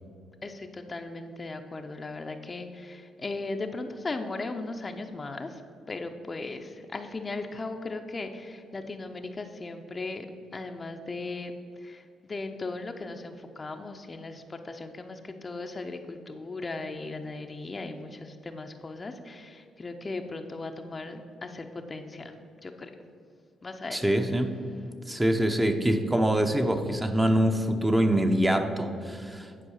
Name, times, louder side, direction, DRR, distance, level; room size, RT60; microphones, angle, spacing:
voice 1, 0.4-5.6 5.9-10.3 10.5-11.5 11.8-22.3 22.6-22.9 23.6-24.0, left 3 dB, 30° left, 6 dB, 0.6 m, -37 dB
voice 2, 23.9-24.6 25.0-29.5, right 1 dB, 10° right, 6 dB, 0.7 m, -24 dB
10.0 x 4.7 x 6.4 m, 2.5 s
cardioid pair, 90°, 0 cm